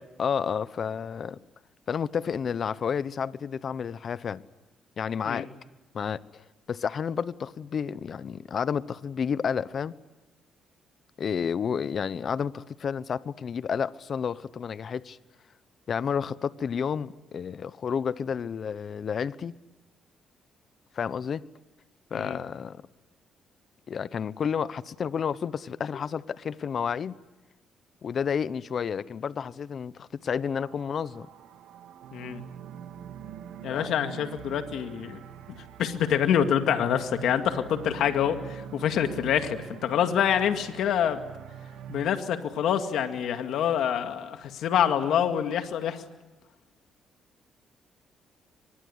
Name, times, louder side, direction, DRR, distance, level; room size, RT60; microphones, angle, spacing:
voice 1, 0.2-1.4 1.9-4.4 5.0-5.5 5.9-6.4 6.7-9.9 11.2-15.2 15.9-19.5 20.9-21.4 22.1-22.8 23.9-27.2 28.0-31.3 33.7-33.9, left 7 dB, 50° left, 0.9 m, -30 dB
sound 1, 30.4-42.1, right 9 dB, 85° right, 1.9 m, -44 dB
voice 2, 32.1-32.4 33.6-35.2 35.8-41.2 41.9-46.0, left 9 dB, 80° left, 2.1 m, -26 dB
24.5 x 21.0 x 9.8 m
cardioid pair, 90°, 0 cm